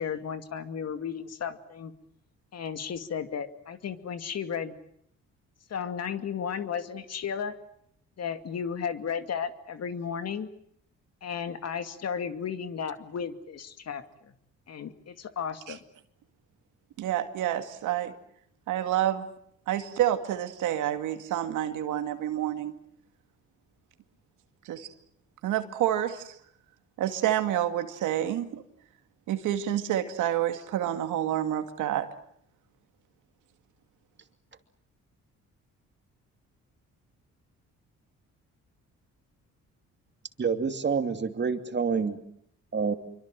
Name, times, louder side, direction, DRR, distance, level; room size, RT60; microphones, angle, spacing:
voice 1, 0.0-1.9 2.5-4.7 5.7-7.5 8.2-10.5 11.2-14.3 14.7-15.8, left 7 dB, 55° left, 9 dB, 2.4 m, -34 dB
voice 2, 17.0-18.1 18.7-19.3 19.7-22.8 24.7-24.9 25.4-26.3 27.0-28.6 29.3-32.1, right 12 dB, 85° right, 8 dB, 2.3 m, -28 dB
voice 3, 40.4-42.2 42.7-42.9, right 5 dB, 35° right, 7 dB, 2.8 m, -27 dB
26.5 x 24.5 x 7.7 m, 0.71 s
cardioid pair, 90°, 30 cm